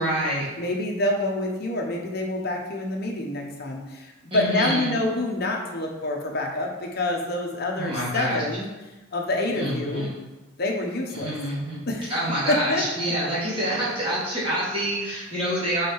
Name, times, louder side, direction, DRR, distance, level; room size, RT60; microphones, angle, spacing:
voice 1, 0.0-0.5 4.3-4.9 7.8-8.4 9.5-10.1 11.1-11.8 12.1-15.9, right 1 dB, 25° right, -8 dB, 2.2 m, -27 dB
voice 2, 0.6-8.7 9.1-10.1 10.6-11.3 11.9-12.1 12.5-12.8, left 1 dB, 45° left, 0 dB, 1.0 m, -27 dB
5.0 x 4.7 x 4.7 m, 1.1 s
head